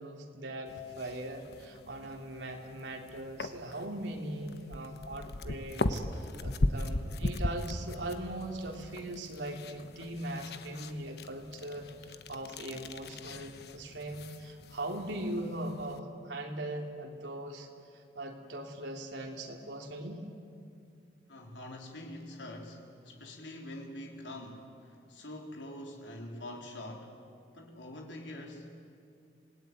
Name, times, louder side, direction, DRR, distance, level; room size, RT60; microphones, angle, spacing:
voice 1, 0.0-17.7 17.9-20.2, right 1 dB, 85° right, 2 dB, 2.8 m, -40 dB
sound 1, 0.7-16.0, left 1 dB, 60° left, 1.1 m, -39 dB
voice 2, 21.3-27.1 27.5-28.7, left 1 dB, 90° left, 1 dB, 3.7 m, -45 dB
27.0 x 18.5 x 9.5 m, 2.4 s
head